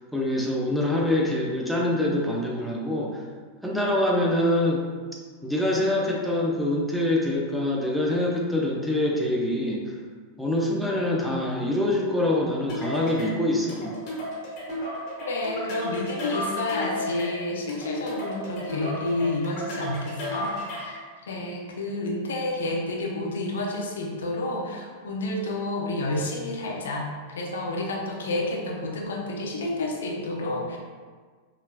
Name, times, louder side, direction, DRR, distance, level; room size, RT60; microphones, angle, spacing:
voice 1, 0.1-3.2 3.6-4.8 5.4-9.9 10.4-14.0, left 1 dB, ahead, -3 dB, 0.7 m, -25 dB
sound 1, 12.7-21.0, equal, 40° left, 1.4 m, -33 dB
voice 2, 15.3-30.8, left 2 dB, 65° left, -1 dB, 0.6 m, -30 dB
5.6 x 3.2 x 2.2 m, 1.5 s
figure-of-eight pair, 90°, 0 cm